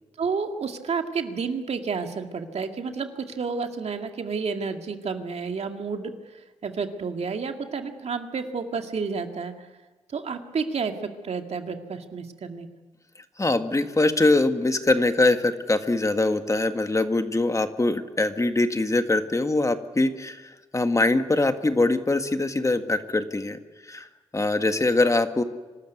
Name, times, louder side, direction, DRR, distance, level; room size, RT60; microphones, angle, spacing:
voice 1, 0.2-6.1 6.6-9.5 10.1-12.7, right 5 dB, 60° right, 5 dB, 2.1 m, -30 dB
voice 2, 13.4-24.1 24.3-25.4, left 2 dB, 25° left, 8 dB, 1.8 m, -23 dB
25.5 x 13.0 x 9.5 m, 1.3 s
supercardioid pair, 45°, 12 cm